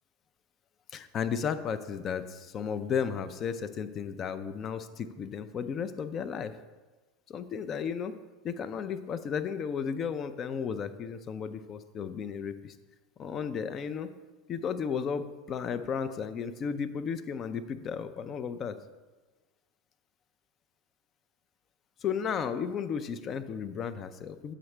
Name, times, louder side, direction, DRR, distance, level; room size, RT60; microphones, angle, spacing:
voice 1, 0.9-6.5 7.3-8.2 8.4-12.7 13.2-14.1 14.5-18.8 22.0-24.5, left 7 dB, 40° left, 12 dB, 0.4 m, -34 dB
7.7 x 4.9 x 3.2 m, 1.3 s
hypercardioid pair, 90°, 0 cm